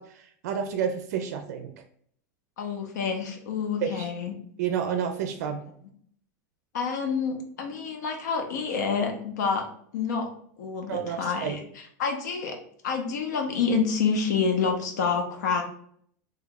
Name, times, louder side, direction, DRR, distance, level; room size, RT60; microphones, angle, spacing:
voice 1, 0.0-1.7 3.8-4.1 4.6-5.6 10.9-11.6, right 8 dB, 70° right, 6 dB, 0.4 m, -30 dB
voice 2, 2.6-4.3 6.7-9.7 9.9-10.3 10.6-12.6 12.8-15.6, left 5 dB, 85° left, 4 dB, 0.8 m, -28 dB
3.2 x 2.2 x 3.8 m, 0.64 s
supercardioid pair, 170°, 9 cm